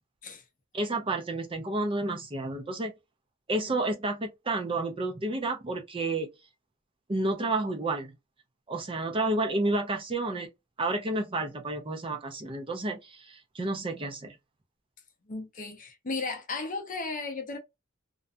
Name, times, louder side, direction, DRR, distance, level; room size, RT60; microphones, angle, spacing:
voice 1, 0.7-2.9 3.5-6.3 7.1-8.1 8.7-10.5 10.8-14.4, right 2 dB, 25° right, 0.5 m, -30 dB
voice 2, 15.3-17.6, left 3 dB, 40° left, 0.6 m, -35 dB
2.4 x 2.2 x 2.5 m
head